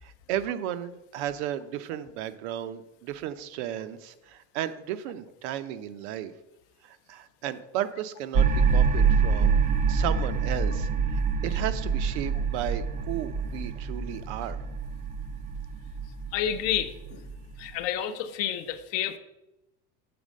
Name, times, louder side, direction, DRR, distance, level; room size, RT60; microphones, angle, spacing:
voice 1, 0.0-6.3 6.8-9.6 9.9-14.6, right 11 dB, 75° right, 12 dB, 0.7 m, -34 dB
sound 1, 8.3-17.7, right 5 dB, 25° right, 0.4 m, -26 dB
voice 2, 16.3-17.3 17.6-19.2, left 10 dB, 45° left, 11 dB, 0.5 m, -30 dB
6.9 x 4.1 x 6.3 m, 0.94 s
cardioid pair, 170°, 34 cm